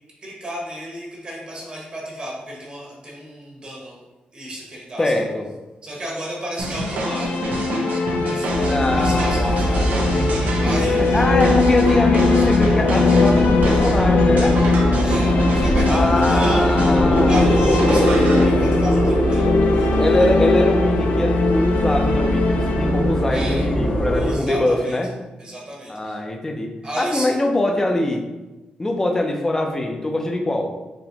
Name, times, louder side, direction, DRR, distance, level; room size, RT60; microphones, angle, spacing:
voice 1, 0.2-4.0 4.3-5.2 5.8-7.6 8.2-9.8 10.6-11.2 15.0-16.8 17.1-20.3 23.3-23.7 24.1-25.0 25.4-26.2 26.8-27.3, equal, 35° right, -3 dB, 1.1 m, -33 dB
voice 2, 5.0-5.5 8.6-14.6 15.9-17.5 20.0-25.1 25.9-28.3 28.8-30.7, left 1 dB, 15° left, 3 dB, 0.4 m, -23 dB
sound 1, 6.6-24.6, left 4 dB, 80° left, 0.3 m, -21 dB
sound 2, 6.6-18.4, right 2 dB, 80° right, 0.6 m, -28 dB
sound 3, 8.5-24.4, right 1 dB, 60° left, 0.7 m, -22 dB
4.0 x 2.9 x 2.9 m, 1.1 s
wide cardioid pair, 135°, 3 cm